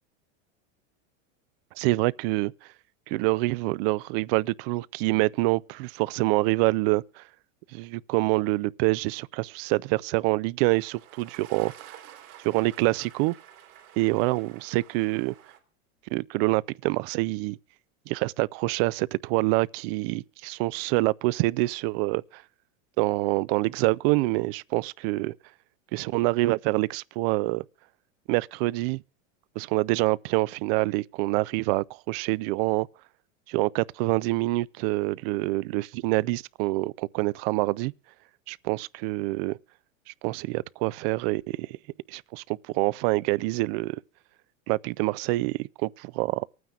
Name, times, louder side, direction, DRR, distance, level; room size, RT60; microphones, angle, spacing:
voice 1, 1.8-2.5 3.1-7.2 7.7-11.7 12.4-13.3 14.0-15.3 16.1-17.6 18.1-22.4 23.0-25.3 25.9-27.6 28.3-29.0 29.6-32.9 33.5-37.9 38.5-39.6 40.2-41.8 42.1-44.0 44.7-46.5, right 21 dB, 50° right, 0.4 m, -26 dB
sound 1, 10.6-15.6, right 11 dB, 75° right, 3.0 m, -50 dB
24.0 x 9.3 x 2.4 m
supercardioid pair, 130°, 40 cm